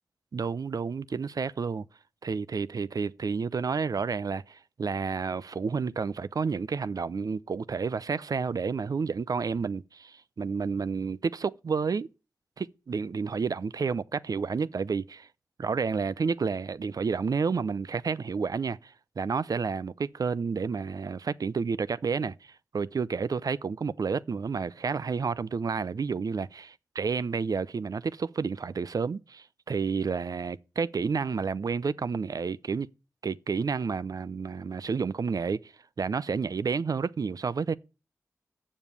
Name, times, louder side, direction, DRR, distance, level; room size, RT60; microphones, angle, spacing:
voice 1, 0.3-1.9 2.2-12.1 12.6-15.3 15.6-26.6 27.0-32.9 33.2-35.7 36.0-37.8, right 5 dB, 70° right, 0.5 m, -30 dB
7.5 x 7.0 x 8.1 m
cardioid pair, 50°, 7 cm